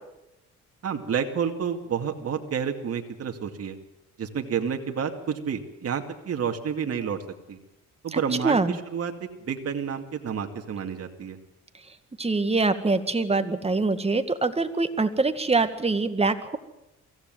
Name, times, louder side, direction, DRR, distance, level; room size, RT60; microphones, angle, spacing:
voice 1, 0.8-3.8 4.2-7.2 7.5-7.6 8.0-9.1 9.4-11.4, right 7 dB, 50° right, 4 dB, 2.4 m, -29 dB
voice 2, 8.1-8.8 12.2-16.6, right 3 dB, 20° right, 9 dB, 2.1 m, -24 dB
23.5 x 16.5 x 9.3 m, 0.92 s
cardioid pair, 90°, 30 cm